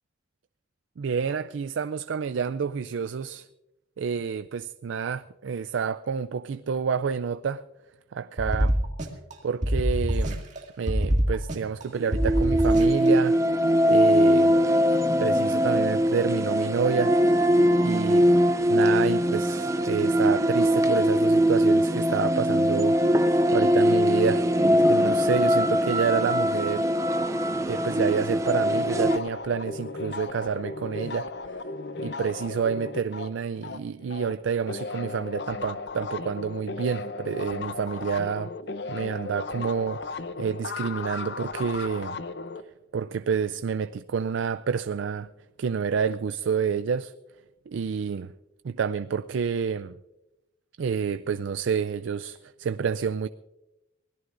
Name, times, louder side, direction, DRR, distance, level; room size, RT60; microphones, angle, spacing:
voice 1, 1.0-3.5 4.0-7.6 8.1-8.8 9.4-10.4 10.8-13.4 13.8-14.5 15.2-17.1 17.8-18.3 18.7-23.2 23.5-24.4 24.9-26.9 27.7-31.3 32.0-38.5 38.9-42.2 42.9-45.3 45.6-47.1 47.7-48.3 48.6-49.9 50.8-53.3, right 6 dB, 80° right, 0.4 m, -28 dB
sound 1, 8.4-9.3 9.6-10.6 10.9-11.8 12.1-13.1, equal, 40° right, 2.1 m, -25 dB
sound 2, 12.0-29.2, equal, 15° right, 0.4 m, -22 dB
sound 3, 28.4-34.3 34.6-42.6, left 3 dB, 60° left, 0.7 m, -36 dB
24.0 x 17.0 x 2.6 m
head